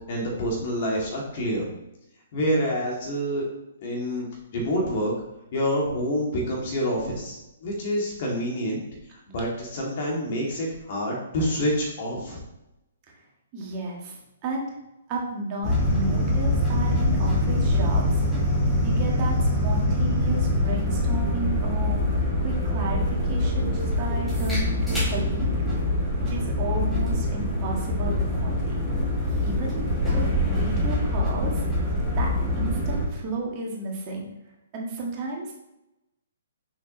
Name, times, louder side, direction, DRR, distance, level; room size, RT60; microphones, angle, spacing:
voice 1, 0.1-1.6 2.3-3.5 3.8-4.2 4.5-5.1 5.5-8.8 9.3-12.4, equal, 45° left, -2 dB, 2.5 m, -27 dB
voice 2, 13.5-14.8 15.1-18.2 18.8-25.5 26.3-28.8 29.4-30.2 30.5-31.6 32.2-34.3 34.7-35.5, right 2 dB, 30° right, -1 dB, 1.7 m, -33 dB
sound 1, 15.6-33.1, left 1 dB, ahead, 2.1 m, -24 dB
7.0 x 6.0 x 3.1 m, 0.90 s
figure-of-eight pair, 125°, 0 cm